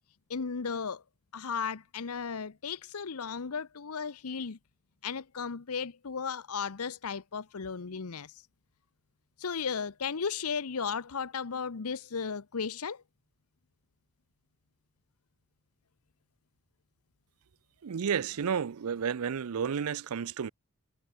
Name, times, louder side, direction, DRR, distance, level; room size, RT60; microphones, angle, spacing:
voice 1, 0.3-1.0 1.3-4.6 5.0-8.4 9.4-13.0, left 6 dB, 90° left, 0.8 m, -35 dB
voice 2, 17.8-20.5, right 7 dB, 80° right, 0.5 m, -31 dB
head